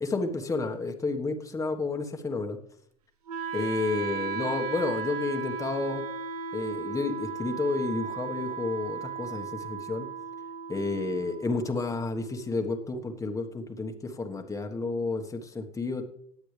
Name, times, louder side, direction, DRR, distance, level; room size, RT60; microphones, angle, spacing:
voice 1, 0.0-2.6 3.5-6.0 6.5-10.1 10.7-16.0, left 3 dB, 15° left, 4 dB, 1.4 m, -31 dB
Wind instrument woodwind instrument, 3.3-13.3, right 5 dB, 90° right, 1.1 m, -36 dB
18.5 x 8.1 x 3.4 m, 0.66 s
supercardioid pair, 100°, 19 cm